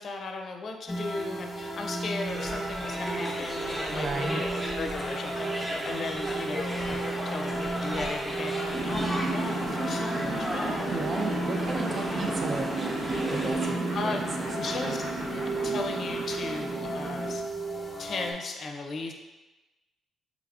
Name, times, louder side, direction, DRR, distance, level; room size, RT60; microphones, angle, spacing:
voice 1, 0.0-5.5 5.8-11.0 12.1-12.3 13.9-14.3 14.6-15.0 15.3-17.4 18.0-19.1, left 3 dB, 50° left, 4 dB, 0.5 m, -36 dB
sound 1, 0.9-18.3, right 2 dB, 10° left, 1.2 m, -34 dB
sound 2, 2.3-13.7, equal, 15° right, 1.0 m, -36 dB
voice 2, 3.9-4.7 10.7-13.8 14.1-14.5, right 3 dB, 45° right, 3 dB, 0.5 m, -34 dB
sound 3, 8.7-17.3, right 2 dB, 80° right, 1.1 m, -34 dB
4.9 x 3.3 x 2.5 m, 1.1 s
cardioid pair, 90°, 0 cm